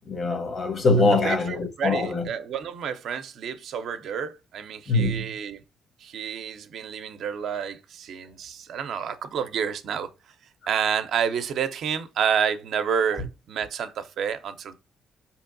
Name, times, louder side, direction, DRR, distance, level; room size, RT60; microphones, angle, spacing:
voice 1, 0.1-2.3 4.9-5.3, left 3 dB, 45° left, 0.9 m, -23 dB
voice 2, 1.1-5.6 6.0-10.1 10.7-14.8, right 7 dB, 70° right, 0.4 m, -29 dB
4.5 x 2.8 x 2.5 m
cardioid pair, 90°, 0 cm